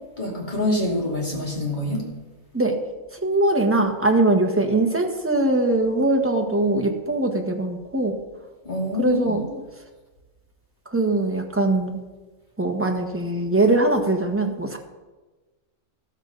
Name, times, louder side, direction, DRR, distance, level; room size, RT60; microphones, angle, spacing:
voice 1, 0.2-2.1 8.6-9.4, left 1 dB, 35° left, -3 dB, 3.2 m, -26 dB
voice 2, 3.2-8.2 9.0-9.6 10.9-12.0 12.6-14.8, right 2 dB, 10° right, 3 dB, 1.3 m, -21 dB
13.5 x 13.5 x 4.1 m, 1.2 s
omnidirectional pair, 1.4 m